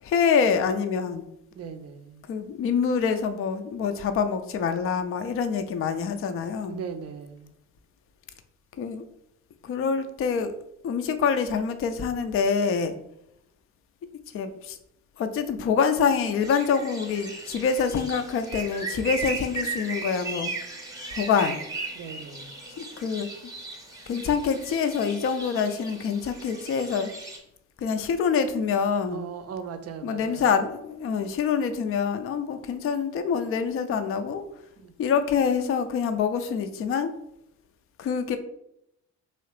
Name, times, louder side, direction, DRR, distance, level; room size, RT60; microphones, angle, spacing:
voice 1, 0.0-1.3 2.3-6.8 8.8-9.0 9.6-10.5 10.8-12.9 14.3-14.8 15.2-20.5 21.1-21.6 22.8-23.5 24.1-27.1 27.8-29.3 30.0-34.5 35.0-37.1 38.0-38.4, left 6 dB, 35° left, 9 dB, 0.4 m, -26 dB
voice 2, 1.5-2.2 6.7-7.5 22.0-22.5 29.1-30.5 34.8-34.9, right 6 dB, 35° right, 8 dB, 0.5 m, -38 dB
sound 1, 16.4-27.4, right 3 dB, 10° right, 0.8 m, -37 dB
3.1 x 2.8 x 3.2 m, 0.78 s
hypercardioid pair, 50°, 42 cm